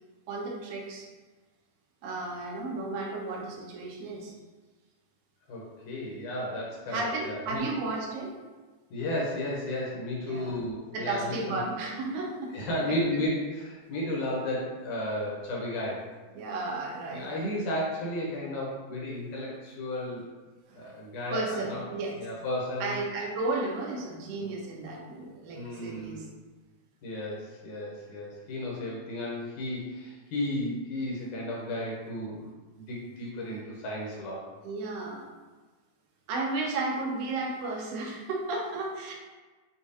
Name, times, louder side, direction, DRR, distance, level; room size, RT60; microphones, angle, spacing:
voice 1, 0.3-1.1 2.0-4.3 6.9-8.4 10.2-10.5 10.9-13.2 16.3-17.3 20.7-20.9 21.3-22.2 22.8-26.2 34.6-35.3 36.3-39.1, right 3 dB, 85° right, -1 dB, 2.4 m, -33 dB
voice 2, 5.5-7.7 8.9-11.6 12.5-16.1 17.1-20.3 20.8-21.8 22.2-23.0 24.4-24.6 25.5-26.2 27.0-32.5 32.8-34.5, left 1 dB, 75° left, -4 dB, 2.1 m, -33 dB
6.9 x 2.4 x 2.6 m, 1.3 s
omnidirectional pair, 3.9 m